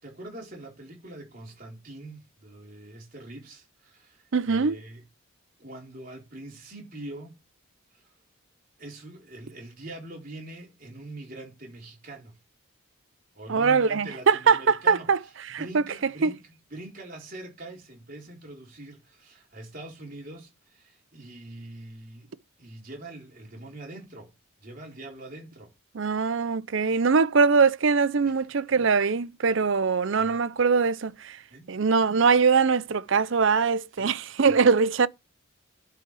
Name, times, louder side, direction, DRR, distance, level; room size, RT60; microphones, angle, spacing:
voice 1, 0.0-5.0 5.6-7.3 7.9-8.1 8.8-12.4 13.3-15.1 15.6-16.4 16.7-22.3 22.6-24.3 24.6-25.7 28.2-28.4 28.7-28.8 30.2-30.4 31.5-31.7 33.9-34.4, right 2 dB, 40° right, 4.0 m, -43 dB
voice 2, 4.3-4.8 13.5-15.9 16.2-16.3 25.9-31.4 31.7-35.1, right 5 dB, 55° right, 0.5 m, -22 dB
11.5 x 5.6 x 4.8 m
head